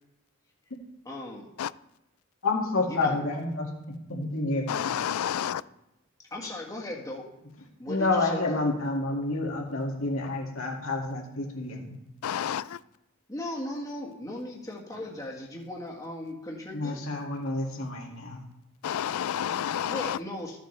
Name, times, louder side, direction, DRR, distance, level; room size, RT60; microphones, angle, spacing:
voice 1, 1.0-1.5 2.9-3.2 6.3-7.2 7.8-8.6 13.3-17.0 19.9-20.6, left 1 dB, 15° left, 1.6 m, -37 dB
voice 2, 2.4-4.9 7.9-12.0 16.7-18.4, left 2 dB, 75° left, 2.1 m, -29 dB
voice 3, 4.7-5.6 12.2-12.8 18.8-20.2, left 9 dB, 90° left, 0.4 m, -30 dB
14.0 x 8.1 x 3.3 m
head